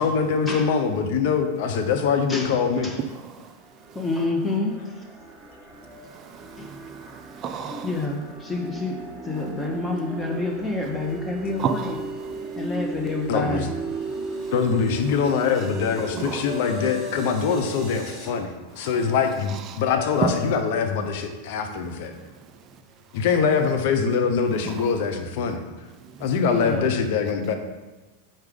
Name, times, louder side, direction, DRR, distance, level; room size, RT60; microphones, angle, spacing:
voice 1, 0.0-2.9 13.3-13.7 14.5-22.1 23.1-25.6 26.2-27.5, left 6 dB, 50° left, 0.7 m, -23 dB
voice 2, 2.3-3.0 3.9-4.8 6.6-6.7 7.8-12.0 12.6-13.7 26.4-26.9, left 2 dB, 10° left, 0.9 m, -28 dB
voice 3, 3.1-3.6 3.9-4.1 5.8-8.0 11.6-12.7 14.1-14.5 16.1-16.6 18.8-19.0 19.5-19.8 20.2-20.4 22.1-22.8 24.6-24.9 26.0-26.4, right 6 dB, 30° right, 0.5 m, -33 dB
sound 1, 3.4-18.3, right 3 dB, 15° right, 1.2 m, -36 dB
sound 2, 14.2-15.2 15.4-23.4, left 6 dB, 85° left, 1.0 m, -39 dB
4.7 x 4.4 x 5.2 m
figure-of-eight pair, 90°, 0 cm